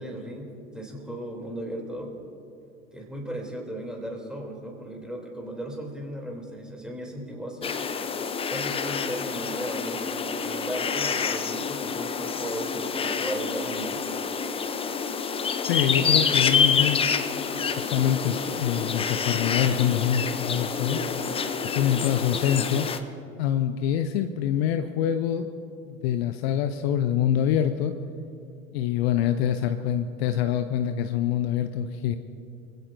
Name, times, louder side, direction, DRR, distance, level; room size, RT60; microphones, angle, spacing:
voice 1, 0.0-2.1 2.9-7.7 8.5-14.0, right 1 dB, ahead, 0 dB, 3.2 m, -36 dB
sound 1, 7.6-23.0, left 6 dB, 15° left, 0.7 m, -27 dB
voice 2, 15.6-17.0 17.8-21.0 21.6-22.9 23.4-25.5 25.9-27.9 28.7-32.2, left 10 dB, 50° left, 9 dB, 0.8 m, -25 dB
25.5 x 16.0 x 2.7 m, 2.7 s
figure-of-eight pair, 85°, 42 cm